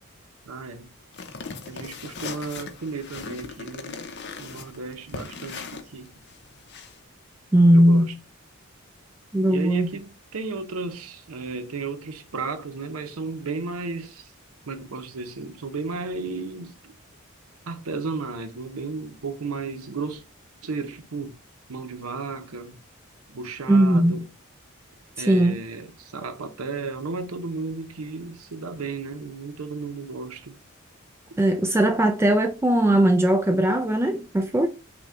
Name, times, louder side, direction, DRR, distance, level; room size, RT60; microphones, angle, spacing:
voice 1, 0.5-0.9 1.6-4.1 4.4-6.1 7.7-8.1 9.4-14.3 14.6-16.7 17.7-20.2 20.6-21.4 21.7-22.8 23.3-24.2 25.2-30.6, right 4 dB, 90° right, 0.7 m, -34 dB
sound 1, 1.1-7.0, left 4 dB, 55° left, 0.6 m, -39 dB
voice 2, 7.5-8.2 9.3-9.9 23.7-24.3 25.2-25.6 31.4-34.7, right 1 dB, 10° right, 0.3 m, -19 dB
5.9 x 2.2 x 3.7 m
head